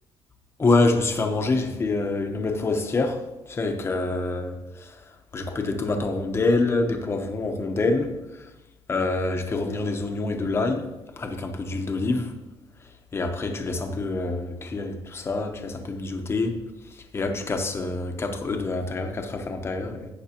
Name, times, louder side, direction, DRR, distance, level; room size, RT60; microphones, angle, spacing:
voice 1, 0.6-3.2 3.5-4.6 5.3-8.1 8.9-10.9 11.2-12.3 13.1-16.5 17.1-20.1, left 3 dB, 25° left, 5 dB, 1.0 m, -26 dB
16.5 x 6.0 x 3.0 m, 1.0 s
cardioid pair, 160°, 10 cm